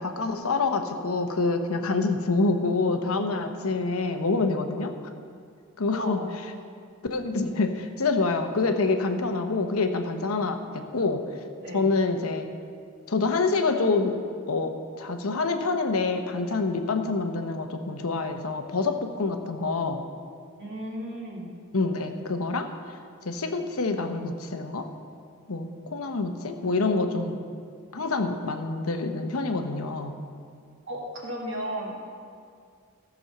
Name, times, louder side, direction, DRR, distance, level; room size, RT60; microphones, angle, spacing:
voice 1, 0.0-4.9 5.8-6.2 7.1-11.2 11.7-12.5 13.1-14.1 14.5-20.0 21.7-23.0 23.2-24.9 25.5-27.4 27.9-30.1, left 3 dB, 75° left, 6 dB, 0.9 m, -26 dB
voice 2, 5.9-6.2 11.6-11.8 20.6-21.5 30.9-32.1, equal, 55° right, -2 dB, 2.2 m, -34 dB
14.0 x 6.3 x 6.6 m, 2.2 s
head